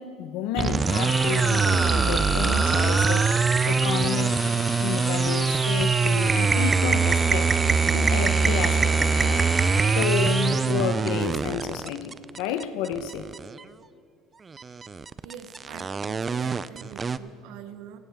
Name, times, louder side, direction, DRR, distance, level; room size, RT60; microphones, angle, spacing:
voice 1, 0.0-9.5 9.9-13.3, left 9 dB, 80° left, 10 dB, 0.9 m, -31 dB
sound 1, 0.6-13.6 14.5-17.2, right 5 dB, 25° right, 0.4 m, -23 dB
sound 2, 0.8-10.9, left 2 dB, 10° left, 1.6 m, -34 dB
voice 2, 15.2-18.0, right 9 dB, 80° right, 9 dB, 1.0 m, -44 dB
16.5 x 16.0 x 3.6 m, 2.3 s
cardioid pair, 115°, 0 cm